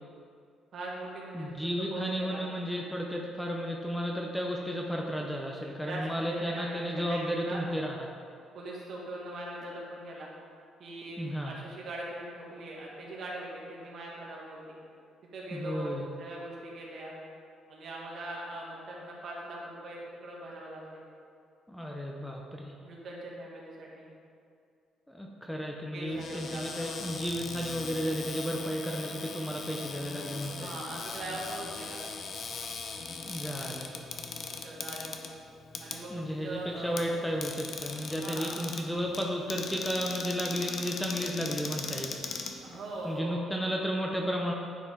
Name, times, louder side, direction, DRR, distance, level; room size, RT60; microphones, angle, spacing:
voice 1, 0.7-2.4 5.8-7.6 8.5-10.3 10.8-14.8 15.3-15.9 16.2-17.1 17.7-21.0 22.8-24.1 25.9-27.0 30.6-32.0 34.6-35.3 35.8-37.0 38.1-38.6 42.6-43.4, right 1 dB, 50° right, -3 dB, 1.6 m, -41 dB
voice 2, 1.3-8.0 11.2-11.5 15.5-16.1 21.7-22.7 25.1-30.8 33.2-33.9 36.1-42.3 43.0-44.5, equal, 5° left, -1 dB, 0.5 m, -33 dB
Cupboard open or close, 26.1-43.2, left 5 dB, 45° left, 0.6 m, -40 dB
9.9 x 4.8 x 3.7 m, 2.3 s
cardioid pair, 150°, 0 cm